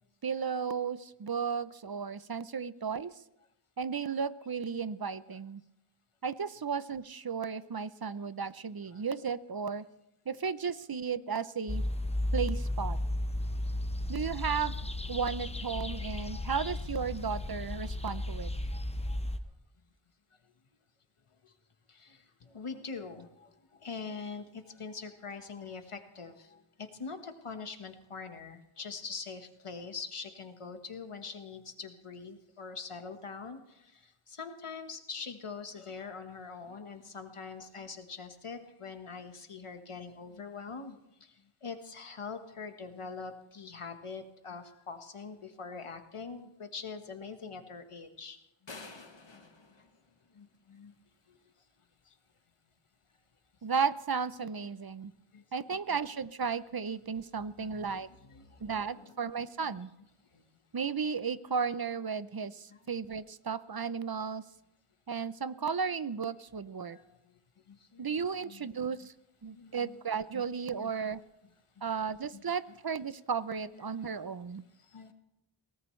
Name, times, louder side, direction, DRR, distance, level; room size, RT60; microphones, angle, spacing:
voice 1, 0.2-3.1 3.8-5.6 6.2-9.8 10.3-11.8 12.3-13.0 14.1-14.7 15.1-18.5 53.6-55.1 55.5-58.1 58.6-59.9 60.7-64.4 65.1-67.0 68.0-69.1 69.4-71.2 71.8-74.6, right 6 dB, 45° right, 15 dB, 0.6 m, -34 dB
sound 1, 11.7-19.4, left 1 dB, 10° left, 1.0 m, -34 dB
voice 2, 18.7-19.2 21.4-21.5 21.9-48.4 48.8-48.9 49.3-49.4 49.7-49.8 50.3-50.9 51.3-51.4 52.0-52.1 55.3-55.4 55.7-55.8 57.6-59.2 59.6-59.8 60.3-60.4 62.7-62.8 66.8-67.4 67.7-68.1 68.4-69.0 69.5-70.0 70.3-70.4 70.7-70.9 71.8-71.9 72.3-72.4 74.0-74.1 74.8-75.1, left 5 dB, 85° left, 6 dB, 1.4 m, -44 dB
sound 2, 48.7-50.8, left 3 dB, 60° left, 1.8 m, -50 dB
22.5 x 18.0 x 3.2 m, 0.88 s
wide cardioid pair, 50°, 50 cm